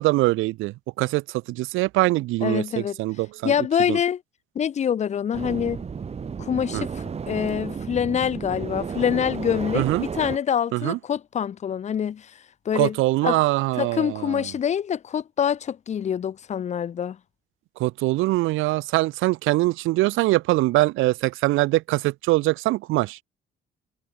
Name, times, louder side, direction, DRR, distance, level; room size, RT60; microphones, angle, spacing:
voice 1, 0.0-3.5 3.9-4.0 6.7-6.8 9.7-10.0 10.7-11.0 12.7-14.4 17.8-23.2, right 19 dB, 85° right, 0.4 m, -23 dB
voice 2, 2.4-3.0 3.4-4.2 4.6-5.8 6.4-12.3 12.7-13.0 13.2-13.4 13.8-17.2, left 8 dB, 35° left, 0.4 m, -25 dB
sound 1, 5.3-10.4, right 6 dB, 30° right, 0.8 m, -32 dB
cardioid pair, 90°, 20 cm